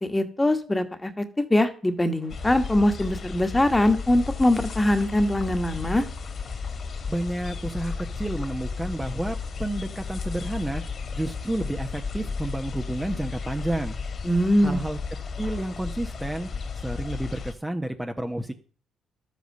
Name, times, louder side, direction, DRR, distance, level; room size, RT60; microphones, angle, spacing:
voice 1, 0.0-6.0 14.2-14.8, left 1 dB, 15° left, 8 dB, 1.7 m, -22 dB
sound 1, 2.3-17.5, left 5 dB, 50° left, 2.4 m, -34 dB
voice 2, 7.1-10.8 11.1-14.0 14.6-15.0 15.4-16.5 16.7-18.5, right 1 dB, 10° right, 4 dB, 1.1 m, -30 dB
12.0 x 8.3 x 6.7 m, 0.41 s
cardioid pair, 90°, 0 cm